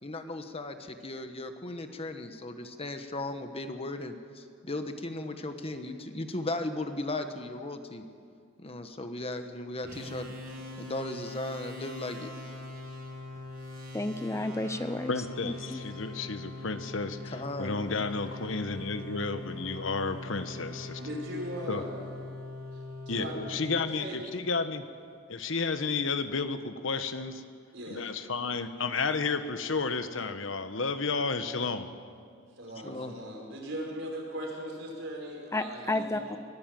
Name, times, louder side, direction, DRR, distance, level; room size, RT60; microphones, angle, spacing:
voice 1, 0.0-8.0 8.6-10.3 10.8-12.3 17.3-17.8 32.8-33.1, left 2 dB, 30° left, 7 dB, 1.3 m, -36 dB
sound 1, 9.8-24.4, left 2 dB, 50° right, 6.6 m, -42 dB
voice 2, 13.9-15.1 15.4-15.8 35.5-36.4, left 2 dB, 15° left, 10 dB, 0.6 m, -32 dB
voice 3, 15.1-21.0 21.7-21.8 23.1-24.8 25.3-27.4 27.9-31.9, left 4 dB, 70° left, 10 dB, 1.2 m, -32 dB
voice 4, 21.0-21.9 23.1-24.3 27.7-28.0 32.6-36.3, equal, 70° right, 0 dB, 5.4 m, -39 dB
23.5 x 16.5 x 7.6 m, 2.2 s
head